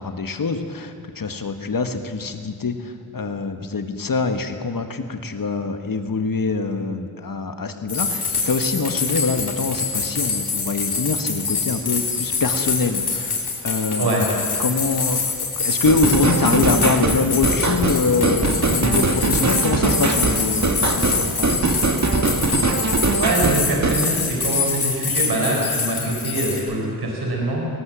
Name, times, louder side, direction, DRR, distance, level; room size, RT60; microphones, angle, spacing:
voice 1, 0.0-21.6, left 4 dB, 60° left, 7 dB, 1.6 m, -24 dB
sound 1, 7.9-26.6, left 4 dB, 80° left, 4.0 m, -25 dB
sound 2, 15.8-24.0, right 3 dB, 45° right, 1.7 m, -21 dB
voice 2, 23.2-27.7, right 2 dB, 80° right, -1 dB, 4.1 m, -24 dB
19.5 x 19.0 x 7.6 m, 2.3 s
wide cardioid pair, 75°, 38 cm